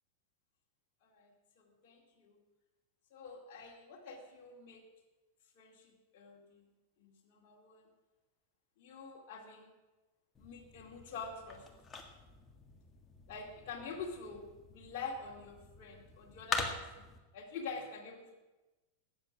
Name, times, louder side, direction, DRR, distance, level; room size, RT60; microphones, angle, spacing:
voice 1, 1.6-2.4 3.1-4.8 5.6-6.6 7.0-7.8 8.8-9.7 10.4-11.6 13.3-14.4 14.7-17.0 17.3-18.4, left 5 dB, 45° left, -1 dB, 2.3 m, -46 dB
sound 1, 10.3-17.2, left 3 dB, 15° left, 1.7 m, -44 dB
14.0 x 9.0 x 6.1 m, 1.1 s
figure-of-eight pair, 90°, 0 cm